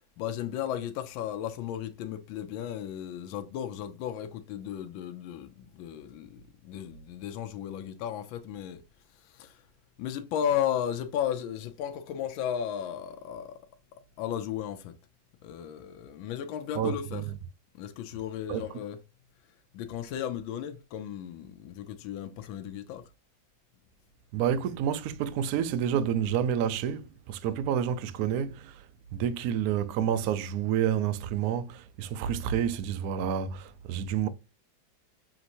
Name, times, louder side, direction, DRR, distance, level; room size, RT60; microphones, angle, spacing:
voice 1, 0.2-8.8 9.1-9.6 10.0-13.6 14.2-14.9 15.4-17.2 17.7-19.0 19.7-23.1, left 9 dB, 80° left, 1.4 m, -35 dB
voice 2, 16.8-17.2 18.5-18.6 24.3-28.8 29.1-34.3, right 9 dB, 90° right, 0.8 m, -29 dB
6.1 x 2.9 x 2.6 m
omnidirectional pair, 2.2 m